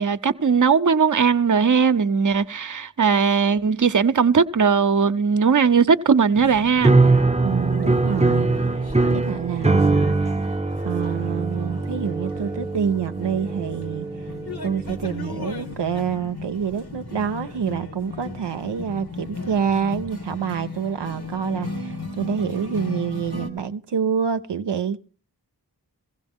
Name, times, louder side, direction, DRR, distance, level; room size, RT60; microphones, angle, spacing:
voice 1, 0.0-6.9, right 6 dB, 50° right, 0.7 m, -19 dB
sound 1, 6.3-23.5, left 3 dB, 65° left, 2.1 m, -36 dB
sound 2, 6.8-15.1, right 3 dB, 15° right, 0.7 m, -22 dB
voice 2, 7.4-8.5 9.1-10.2 10.8-14.1 14.6-25.0, right 7 dB, 85° right, 0.6 m, -27 dB
16.0 x 16.0 x 3.6 m
wide cardioid pair, 40°, 41 cm